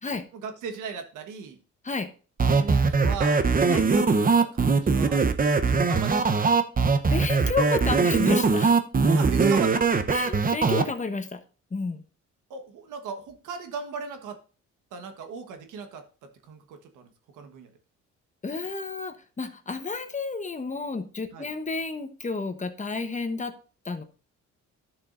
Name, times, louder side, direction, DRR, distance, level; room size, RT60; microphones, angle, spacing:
voice 1, 0.3-1.6 2.5-4.1 4.4-6.5 9.1-10.0 12.5-14.4 14.9-17.7 21.3-21.5, right 5 dB, 85° right, 7 dB, 1.5 m, -38 dB
sound 1, 2.4-10.8, right 4 dB, 30° right, 0.9 m, -21 dB
voice 2, 7.1-8.7 10.1-11.4 11.7-12.0 18.4-23.5 23.8-24.0, left 4 dB, 25° left, 8 dB, 1.1 m, -31 dB
11.5 x 6.9 x 2.6 m, 0.36 s
cardioid pair, 90°, 30 cm